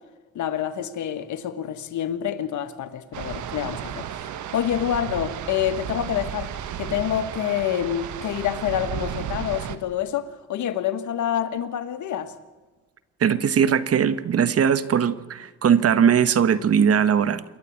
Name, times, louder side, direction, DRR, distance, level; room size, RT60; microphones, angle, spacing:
voice 1, 0.3-6.5 6.8-12.3, left 10 dB, 75° left, 1.7 m, -27 dB
sound 1, 3.1-9.8, right 9 dB, 75° right, 1.4 m, -33 dB
voice 2, 13.2-17.4, right 8 dB, 50° right, 1.2 m, -20 dB
27.5 x 11.5 x 8.7 m
cardioid pair, 90°, 30 cm